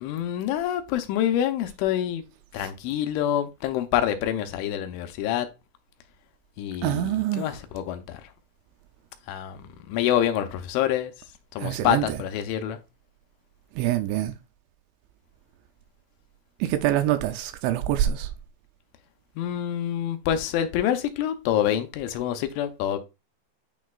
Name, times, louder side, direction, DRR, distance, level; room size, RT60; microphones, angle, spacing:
voice 1, 0.0-2.2 2.5-5.5 6.6-8.2 9.3-11.1 11.6-12.8 19.4-23.0, left 11 dB, 85° left, 3.0 m, -26 dB
voice 2, 6.8-7.5 11.6-12.1 13.8-14.3 16.6-18.3, right 12 dB, 85° right, 2.7 m, -25 dB
9.2 x 4.3 x 2.3 m
omnidirectional pair, 5.5 m